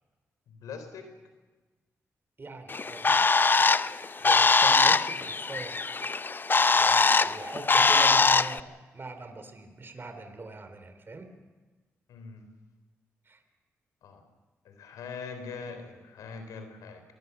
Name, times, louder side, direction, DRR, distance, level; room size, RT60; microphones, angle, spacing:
voice 1, 0.5-1.1 12.1-12.5 14.0-14.2 14.6-17.0, left 5 dB, 85° left, 7 dB, 3.6 m, -42 dB
voice 2, 2.4-3.8 4.2-5.8 6.6-11.3 13.3-13.4, right 3 dB, 40° right, 7 dB, 3.1 m, -42 dB
Bird, 2.7-8.6, left 4 dB, 35° left, 0.6 m, -22 dB
24.5 x 19.5 x 6.8 m, 1.3 s
supercardioid pair, 50°, 6 cm